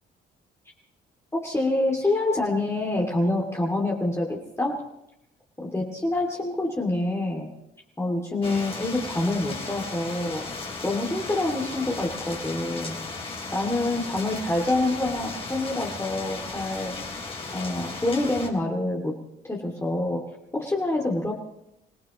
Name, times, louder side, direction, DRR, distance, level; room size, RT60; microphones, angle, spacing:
voice 1, 1.3-4.8 5.6-7.5 8.0-10.4 10.8-13.0 13.5-17.1 17.5-19.2 19.4-20.2 20.5-21.3, left 2 dB, 15° left, -2 dB, 2.6 m, -26 dB
sound 1, 8.4-18.5, left 3 dB, 30° left, 3.3 m, -36 dB
27.0 x 17.0 x 3.1 m, 0.82 s
cardioid pair, 90°, 20 cm